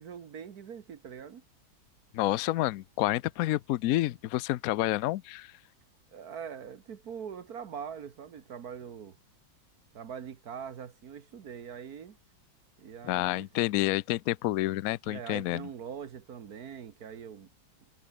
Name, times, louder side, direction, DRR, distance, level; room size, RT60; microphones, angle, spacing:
voice 1, 0.0-1.4 6.1-9.2 9.9-12.2 12.8-13.8 15.0-17.5, right 7 dB, 55° right, 1.6 m, -43 dB
voice 2, 2.1-5.5 13.0-15.7, left 16 dB, 85° left, 0.7 m, -29 dB
omnidirectional pair, 2.1 m